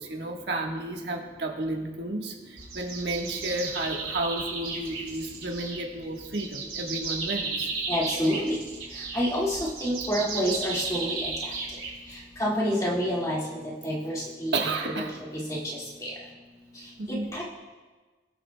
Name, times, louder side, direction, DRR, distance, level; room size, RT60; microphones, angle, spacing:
voice 1, 0.0-7.7 14.5-15.1 17.0-17.3, right 2 dB, 70° right, 1 dB, 1.3 m, -32 dB
sound 1, 2.6-12.4, right 4 dB, 55° right, 3.2 m, -35 dB
voice 2, 7.9-8.6 9.1-11.5 12.4-14.7 14.9-15.1 15.3-16.1 17.1-17.4, equal, 20° left, -5 dB, 2.0 m, -28 dB
22.5 x 7.6 x 2.2 m, 1.3 s
head